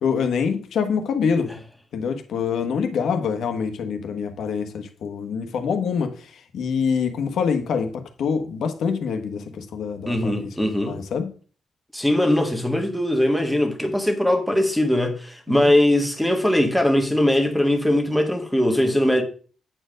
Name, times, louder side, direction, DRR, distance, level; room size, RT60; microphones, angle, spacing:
voice 1, 0.0-1.5 1.9-6.3 6.5-11.3 15.5-15.7, left 6 dB, 75° left, 1.4 m, -25 dB
voice 2, 10.1-11.0 11.9-19.2, left 1 dB, ahead, 1.5 m, -20 dB
8.8 x 4.6 x 6.3 m
wide cardioid pair, 145°, 0 cm